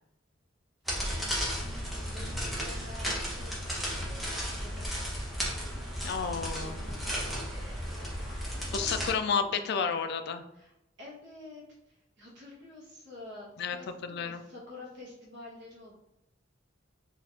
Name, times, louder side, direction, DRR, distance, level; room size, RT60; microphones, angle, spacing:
sound 1, 0.9-9.1, equal, ahead, 0.8 m, -34 dB
voice 1, 0.9-1.3 2.1-3.6 3.9-5.8 6.6-9.5 10.5-10.7 11.0-15.9, left 2 dB, 60° right, -3 dB, 0.9 m, -49 dB
voice 2, 6.0-6.8 8.7-10.4 13.6-13.8 14.0-14.4, left 6 dB, 60° left, 9 dB, 0.3 m, -31 dB
3.8 x 2.4 x 2.8 m, 0.87 s
head